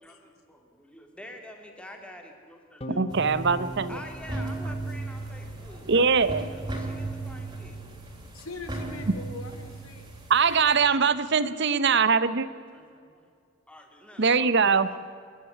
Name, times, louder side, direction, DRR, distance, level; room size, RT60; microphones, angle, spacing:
voice 1, 0.0-3.2 3.9-7.8 11.7-12.3 12.7-13.3 13.7-15.0, left 1 dB, 5° left, 3 dB, 2.5 m, -48 dB
sound 1, 2.8-5.4, equal, 25° left, 1.3 m, -40 dB
voice 2, 3.0-4.0 5.9-6.5 10.3-12.5 14.2-14.9, right 5 dB, 55° right, 14 dB, 0.8 m, -22 dB
sound 2, 3.1-10.7, right 2 dB, 20° right, 3.3 m, -37 dB
voice 3, 8.3-10.1, left 2 dB, 80° left, 6 dB, 2.6 m, -41 dB
26.5 x 11.5 x 9.8 m, 2.2 s
head